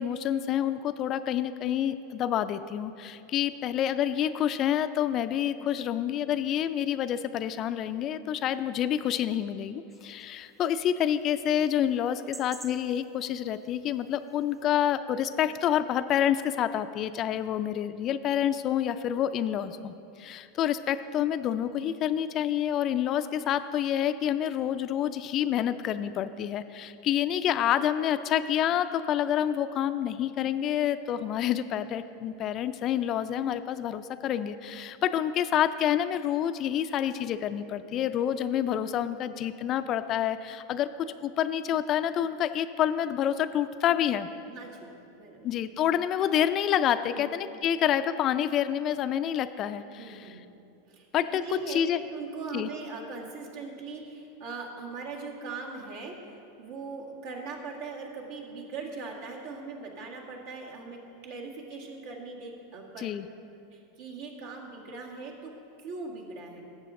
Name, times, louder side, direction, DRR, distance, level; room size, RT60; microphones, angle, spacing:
voice 1, 0.0-40.9 41.2-44.3 45.4-50.3 51.1-51.4 51.7-52.0 52.5-52.7 63.0-63.3, left 10 dB, 40° left, 12 dB, 0.4 m, -28 dB
sound 1, 9.9-14.9, right 2 dB, 15° right, 0.6 m, -52 dB
voice 2, 44.5-45.6 47.1-47.3 49.9-50.4 50.9-51.8 52.1-63.1 63.7-65.5 65.8-66.7, right 4 dB, 65° right, -1 dB, 1.8 m, -40 dB
12.5 x 7.5 x 3.7 m, 2.7 s
hypercardioid pair, 95°, 0 cm